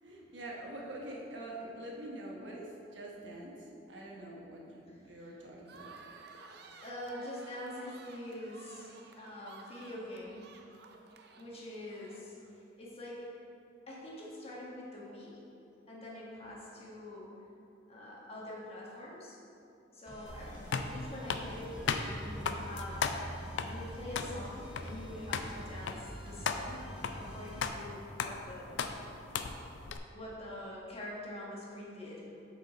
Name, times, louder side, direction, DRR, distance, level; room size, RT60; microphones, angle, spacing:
voice 1, 0.0-5.9, right 1 dB, 90° right, -2 dB, 1.1 m, -45 dB
voice 2, 4.9-5.4 6.8-10.4 11.4-12.3 12.8-13.3 13.9-15.4 15.9-17.3 17.9-19.4 19.9-23.1 23.6-26.8 27.1-28.8 30.1-32.2, left 1 dB, 35° left, -5 dB, 1.4 m, -45 dB
sound 1, 5.7-12.6, right 4 dB, 65° right, 0.5 m, -55 dB
sound 2, 20.1-27.7, equal, 5° right, 1.1 m, -46 dB
sound 3, 20.3-30.0, left 5 dB, 80° left, 0.4 m, -38 dB
6.5 x 4.9 x 4.1 m, 2.9 s
head